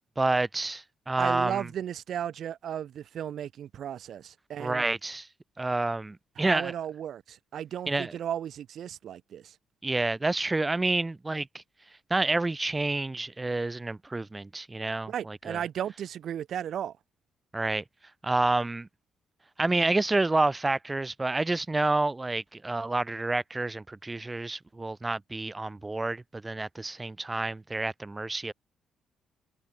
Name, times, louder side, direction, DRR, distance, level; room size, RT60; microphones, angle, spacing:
voice 1, 0.2-1.7 4.6-5.3 5.6-6.7 7.9-8.2 9.8-11.6 12.1-15.6 17.5-17.8 18.2-18.9 19.6-28.5, right 2 dB, 20° right, 1.0 m, -29 dB
voice 2, 1.2-4.8 6.4-9.5 15.1-16.9, right 9 dB, 65° right, 4.5 m, -35 dB
cardioid pair, 90°, 0 cm